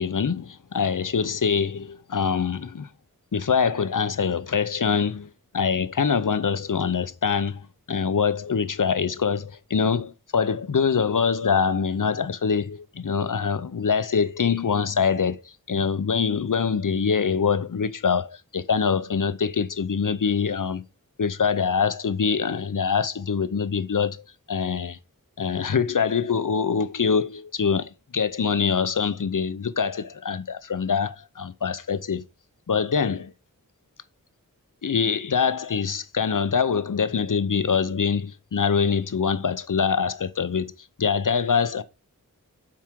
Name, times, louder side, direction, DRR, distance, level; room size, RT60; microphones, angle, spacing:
voice 1, 0.0-2.9 3.3-5.3 5.5-15.4 15.7-20.8 21.2-24.2 24.5-25.0 25.4-32.2 32.7-33.3 34.8-40.7 41.0-41.8, left 6 dB, 65° left, 0.7 m, -24 dB
7.5 x 4.8 x 3.6 m
wide cardioid pair, 50°, 35 cm